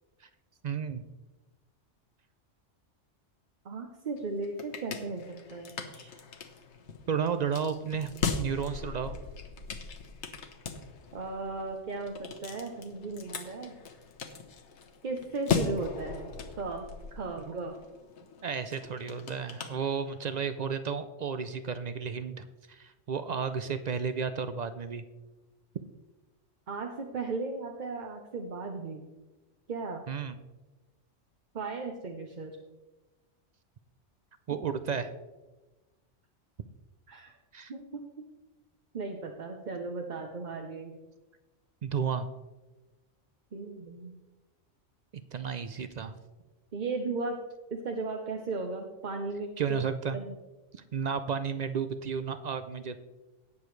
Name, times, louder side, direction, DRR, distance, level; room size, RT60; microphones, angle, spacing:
voice 1, 0.6-1.0 7.1-8.1 8.4-9.2 17.5-17.6 18.4-25.0 30.1-30.4 34.5-35.1 37.5-37.7 41.8-42.3 45.1-46.2 49.6-50.2 50.7-53.0, right 6 dB, 65° right, 11 dB, 0.4 m, -33 dB
voice 2, 3.6-6.1 11.1-13.7 15.0-17.8 26.7-29.0 29.7-30.0 31.5-32.6 37.1-37.3 37.7-38.3 38.9-40.9 43.5-44.2 46.7-47.4 47.7-49.8 50.1-50.4, right 3 dB, 45° right, 3 dB, 0.8 m, -36 dB
sound 1, 4.2-20.4, left 5 dB, 70° left, 1.2 m, -38 dB
18.0 x 6.9 x 3.2 m, 1.2 s
omnidirectional pair, 1.3 m